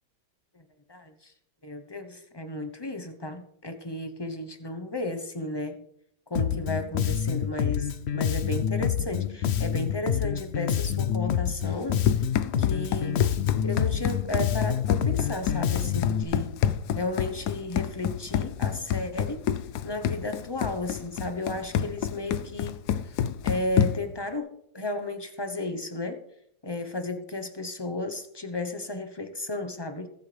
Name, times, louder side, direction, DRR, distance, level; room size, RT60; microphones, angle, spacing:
voice 1, 1.6-5.8 6.3-12.0 12.6-13.2 13.6-16.6 17.0-19.4 19.8-22.8 23.4-24.5 24.7-26.2 26.6-30.1, left 2 dB, 20° left, 7 dB, 0.9 m, -33 dB
Bass guitar, 6.3-16.2, left 8 dB, 55° left, 0.7 m, -27 dB
Run, 11.7-24.2, left 9 dB, 80° left, 1.2 m, -29 dB
21.0 x 8.2 x 3.4 m, 0.74 s
omnidirectional pair, 1.7 m